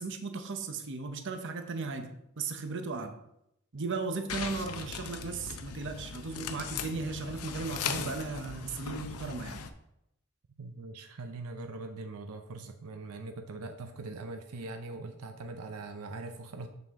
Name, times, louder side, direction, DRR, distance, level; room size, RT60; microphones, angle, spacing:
voice 1, 0.0-3.1 3.7-9.6, right 4 dB, 55° right, 7 dB, 0.8 m, -36 dB
sound 1, 4.3-9.7, left 6 dB, 85° left, 0.6 m, -38 dB
voice 2, 10.6-16.7, right 3 dB, 85° right, 6 dB, 0.6 m, -42 dB
6.9 x 5.9 x 3.6 m, 0.81 s
head